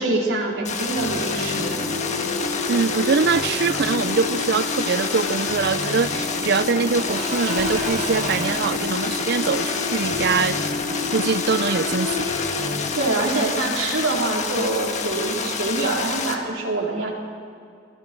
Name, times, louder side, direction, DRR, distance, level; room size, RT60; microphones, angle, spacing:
voice 1, 0.0-1.8 13.0-17.1, right 2 dB, 90° right, -2 dB, 4.1 m, -25 dB
sound 1, 0.6-16.3, left 5 dB, 40° left, 1.6 m, -28 dB
sound 2, 1.0-12.9, left 3 dB, 65° left, 6.5 m, -29 dB
voice 2, 2.7-10.7 11.1-12.3, right 5 dB, 55° right, 17 dB, 0.5 m, -23 dB
Engine / Mechanisms / Drill, 5.4-12.1, right 3 dB, 40° right, 1.3 m, -36 dB
28.5 x 20.5 x 4.6 m, 2.5 s
head